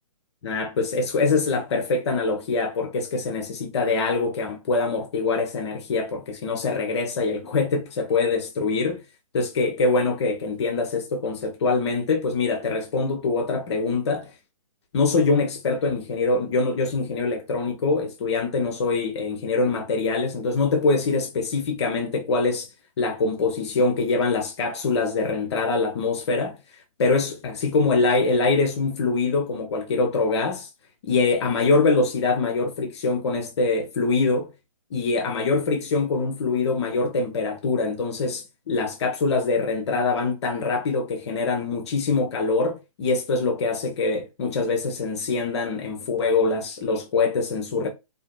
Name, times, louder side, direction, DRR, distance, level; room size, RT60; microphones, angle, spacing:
voice 1, 0.4-9.0 9.3-14.3 14.9-22.7 23.0-26.6 27.0-30.7 31.0-34.5 34.9-47.9, left 3 dB, 50° left, 0.8 m, -24 dB
2.7 x 2.7 x 2.2 m
figure-of-eight pair, 135°, 18 cm